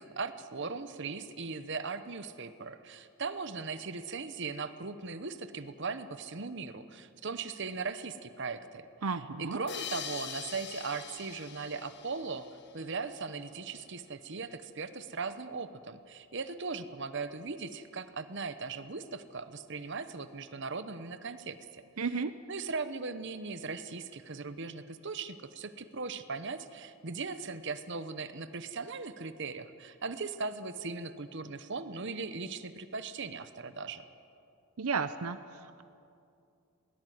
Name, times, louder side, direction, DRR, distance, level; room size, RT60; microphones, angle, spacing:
voice 1, 0.0-8.9 9.4-12.5 12.7-21.8 22.5-34.0, right 4 dB, 55° right, 11 dB, 1.0 m, -39 dB
voice 2, 9.0-9.6 22.0-22.4 34.8-35.8, right 5 dB, 75° right, 11 dB, 0.7 m, -33 dB
sound 1, 9.7-13.0, left 8 dB, 50° left, 1.4 m, -43 dB
21.0 x 18.5 x 9.4 m, 2.5 s
head